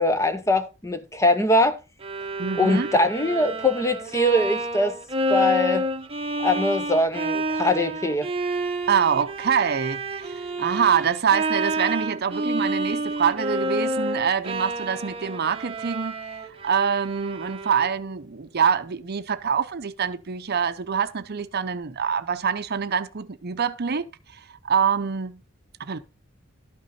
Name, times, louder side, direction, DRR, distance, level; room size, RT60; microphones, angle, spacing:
voice 1, 0.0-1.8 2.6-5.0 5.3-5.9 6.4-8.3, left 1 dB, 15° left, 0.9 m, -22 dB
Bowed string instrument, 2.0-18.1, right 1 dB, 25° right, 1.0 m, -29 dB
voice 2, 2.4-2.9 8.9-16.1 16.6-24.0 24.6-25.4 25.8-26.0, right 7 dB, 50° right, 0.7 m, -25 dB
12.5 x 6.1 x 4.3 m
head